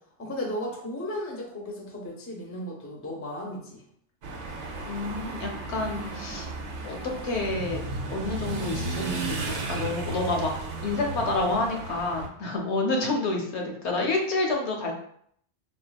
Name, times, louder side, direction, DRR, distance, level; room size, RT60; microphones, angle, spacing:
voice 1, 0.2-3.8, left 1 dB, 20° left, -1 dB, 0.4 m, -35 dB
sound 1, 4.2-12.3, right 3 dB, 90° right, 0.9 m, -34 dB
voice 2, 4.8-6.5 6.8-7.8 8.1-10.5 10.8-14.9, left 2 dB, 75° left, 1 dB, 0.9 m, -29 dB
3.5 x 2.4 x 2.2 m, 0.66 s
omnidirectional pair, 1.2 m